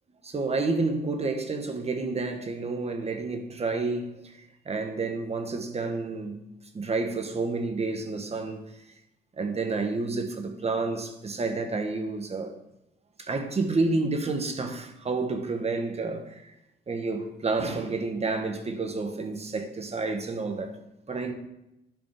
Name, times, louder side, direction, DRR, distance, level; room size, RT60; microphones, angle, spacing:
voice 1, 0.2-6.4 6.7-8.6 9.4-12.5 13.2-16.5 16.9-20.8 21.1-21.3, right 3 dB, 30° right, 1.2 m, -30 dB
12.0 x 5.2 x 3.5 m
cardioid pair, 90°, 20 cm